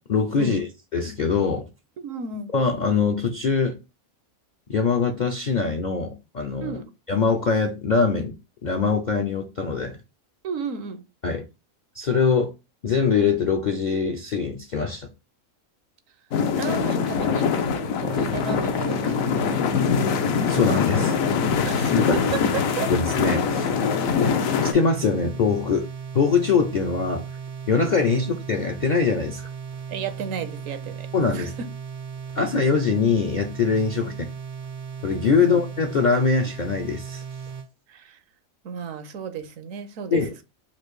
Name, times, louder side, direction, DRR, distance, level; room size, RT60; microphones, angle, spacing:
voice 1, 0.0-1.7 2.5-3.8 4.7-6.7 7.1-8.4 8.6-10.0 11.2-11.4 11.9-12.5 12.8-15.1 20.5-21.2 21.9-22.1 22.9-23.7 24.6-25.9 26.1-27.2 27.7-29.5 31.1-31.5 32.4-34.1 35.0-37.2 40.1-40.3, left 5 dB, 60° left, 0.4 m, -23 dB
voice 2, 2.0-2.5 6.6-6.9 10.4-11.0 16.6-19.6 21.6-22.9 29.9-31.7 34.0-34.2 35.3-35.6 37.9-38.2 38.6-40.4, right 6 dB, 70° right, 1.0 m, -33 dB
sound 1, 16.3-24.7, left 6 dB, 80° left, 1.1 m, -23 dB
sound 2, 18.1-37.7, right 6 dB, 50° right, 0.4 m, -36 dB
4.3 x 2.6 x 4.6 m
omnidirectional pair, 1.5 m